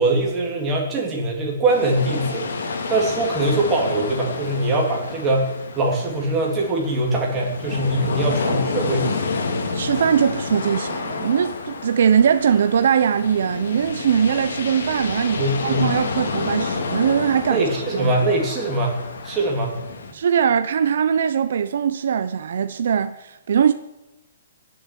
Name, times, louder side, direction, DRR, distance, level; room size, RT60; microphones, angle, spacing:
voice 1, 0.0-9.1 15.4-15.9 17.5-19.0 19.2-19.8, right 2 dB, 10° right, 3.3 m, -22 dB
sound 1, 1.7-20.1, left 4 dB, 65° left, 3.0 m, -29 dB
voice 2, 9.7-17.7 17.9-18.2 20.1-23.7, right 7 dB, 50° right, 0.8 m, -21 dB
17.0 x 7.9 x 9.9 m
hypercardioid pair, 175°, 0 cm